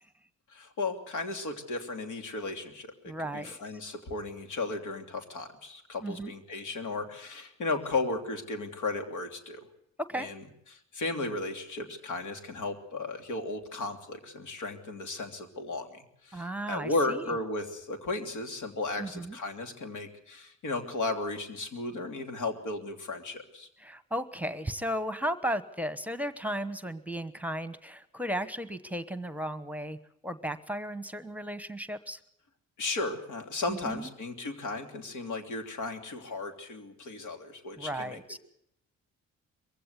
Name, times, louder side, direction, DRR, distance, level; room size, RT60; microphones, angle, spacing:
voice 1, 0.5-9.7 10.1-10.4 10.7-23.7 32.8-38.2, left 3 dB, 80° left, 5 dB, 3.1 m, -35 dB
voice 2, 3.1-3.5 6.0-6.3 10.0-10.3 16.3-17.3 19.0-19.4 23.8-30.0 30.2-32.2 33.7-34.1 37.8-38.4, right 1 dB, 5° right, 12 dB, 1.1 m, -35 dB
22.5 x 16.0 x 8.3 m, 0.76 s
cardioid pair, 90°, 30 cm